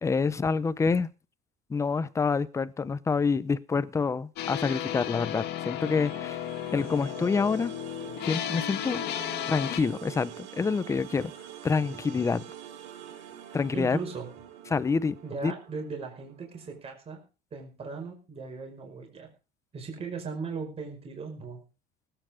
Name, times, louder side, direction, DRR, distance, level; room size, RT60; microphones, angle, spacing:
voice 1, 0.0-1.1 1.7-6.4 6.7-7.7 8.2-9.0 9.5-11.3 11.6-12.4 13.5-14.0 14.7-15.2 15.4-15.5, left 5 dB, 15° left, 16 dB, 0.7 m, -27 dB
sound 1, 4.4-9.8, left 12 dB, 60° left, 2.0 m, -34 dB
sound 2, 5.7-16.8, right 10 dB, 80° right, 3.5 m, -46 dB
voice 2, 13.7-14.3 15.2-17.2 17.5-19.3 19.7-21.6, right 4 dB, 30° right, 2 dB, 5.1 m, -38 dB
18.0 x 9.1 x 5.0 m, 0.33 s
cardioid pair, 145°, 19 cm